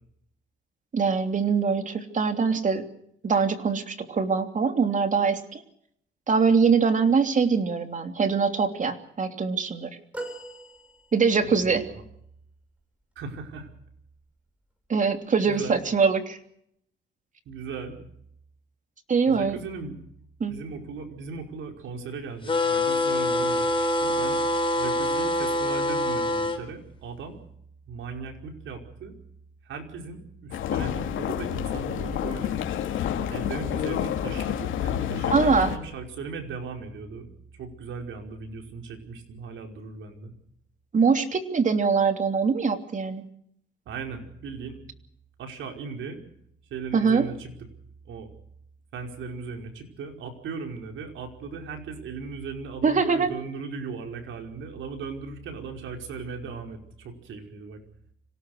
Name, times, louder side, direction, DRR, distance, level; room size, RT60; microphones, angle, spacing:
voice 1, 0.9-2.9 3.2-5.6 6.3-9.9 11.1-11.8 14.9-16.4 19.1-19.6 20.4-20.5 35.3-35.7 40.9-43.2 46.9-47.3 52.8-53.3, right 5 dB, 40° right, 7 dB, 3.1 m, -23 dB
sound 1, 10.1-11.6 13.9-14.1 15.4-15.5, right 1 dB, 5° right, 7.2 m, -40 dB
voice 2, 11.4-12.0 13.1-13.7 15.5-15.8 17.4-18.0 19.3-20.0 20.5-24.4 24.7-27.4 27.8-29.2 29.6-32.6 33.3-37.3 37.6-40.3 43.8-44.8 45.4-46.2 46.7-47.5 48.0-48.3 48.9-57.8, right 4 dB, 75° right, 4 dB, 5.1 m, -37 dB
sound 2, 22.5-26.6, left 1 dB, 25° left, 4.2 m, -25 dB
sound 3, 30.5-35.8, left 9 dB, 80° left, 2.8 m, -29 dB
26.0 x 18.0 x 6.5 m, 0.70 s
cardioid pair, 90°, 20 cm